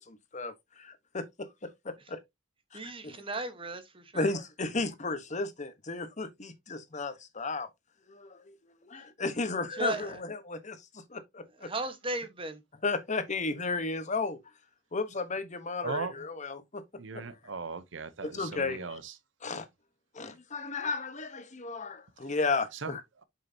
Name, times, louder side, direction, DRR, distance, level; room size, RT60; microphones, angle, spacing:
voice 1, 0.0-2.2 2.7-2.8 3.0-3.1 4.1-7.7 8.1-11.7 12.8-14.4 14.9-16.8 17.1-17.3 18.2-19.0 19.4-19.7 20.1-23.0, left 3 dB, 40° left, 1.1 m, -34 dB
voice 2, 2.7-4.3 6.9-7.0 9.8-10.2 11.6-12.6, right 2 dB, 30° right, 1.2 m, -36 dB
voice 3, 15.8-16.1 17.0-19.1 22.7-23.2, right 4 dB, 70° right, 0.7 m, -38 dB
7.4 x 5.7 x 2.8 m
head